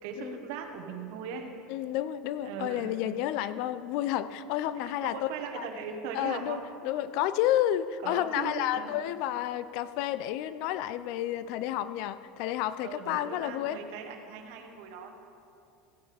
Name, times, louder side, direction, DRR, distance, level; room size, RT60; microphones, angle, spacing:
voice 1, 0.0-1.5 2.4-3.2 4.8-6.6 8.0-8.9 12.8-15.1, right 6 dB, 70° right, 4 dB, 1.3 m, -39 dB
voice 2, 1.7-5.3 5.5-5.7 6.1-13.8, left 12 dB, 65° left, 14 dB, 0.4 m, -31 dB
15.5 x 9.7 x 3.4 m, 2.5 s
supercardioid pair, 130°, 0 cm